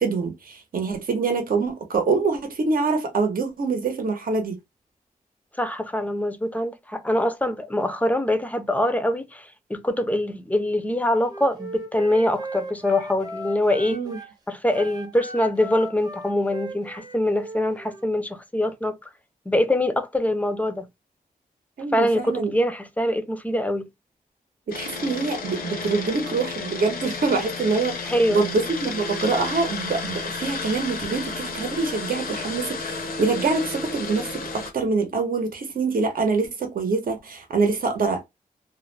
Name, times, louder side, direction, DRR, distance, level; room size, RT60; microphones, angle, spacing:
voice 1, 0.0-4.6 13.9-14.2 21.8-22.5 24.7-38.2, right 4 dB, 75° right, 0.8 m, -25 dB
voice 2, 5.6-14.0 14.5-19.0 19.5-20.9 21.9-23.9 28.1-28.5, left 1 dB, 10° left, 0.4 m, -24 dB
Wind instrument woodwind instrument, 11.2-14.3 14.7-18.1, right 1 dB, 25° right, 0.7 m, -38 dB
sound 1, 24.7-34.7, left 4 dB, 80° left, 0.6 m, -32 dB
2.4 x 2.0 x 3.0 m
wide cardioid pair, 105°, 15 cm